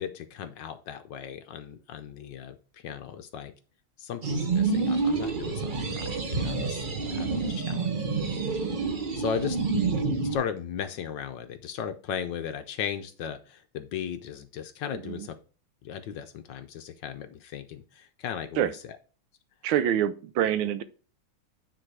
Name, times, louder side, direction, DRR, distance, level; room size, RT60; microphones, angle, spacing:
voice 1, 0.0-3.5 4.0-6.8 7.1-7.9 9.2-9.6 10.3-15.4 15.8-18.7, left 8 dB, 70° left, 1.2 m, -36 dB
sound 1, 4.2-10.3, right 4 dB, 50° right, 0.5 m, -28 dB
voice 2, 14.9-15.3 18.6-18.7 19.6-20.8, right 10 dB, 75° right, 1.4 m, -26 dB
9.2 x 4.0 x 4.7 m
omnidirectional pair, 2.3 m